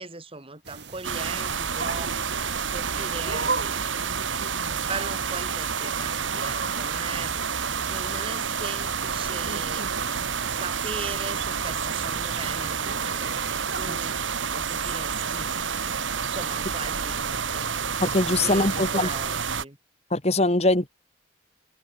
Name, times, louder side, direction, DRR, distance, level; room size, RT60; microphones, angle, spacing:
voice 1, 0.0-2.1 2.7-4.2 4.8-7.4 7.8-10.0 10.4-13.3 13.7-14.2 14.5-15.5 16.3-17.8 18.4-19.8, right 3 dB, 30° right, 2.8 m, -38 dB
sound 1, 0.6-13.9, right 4 dB, 60° right, 3.8 m, -38 dB
sound 2, 1.0-19.6, right 6 dB, 90° right, 1.7 m, -29 dB
voice 2, 18.0-19.1 20.1-20.9, left 2 dB, 35° left, 2.0 m, -22 dB
head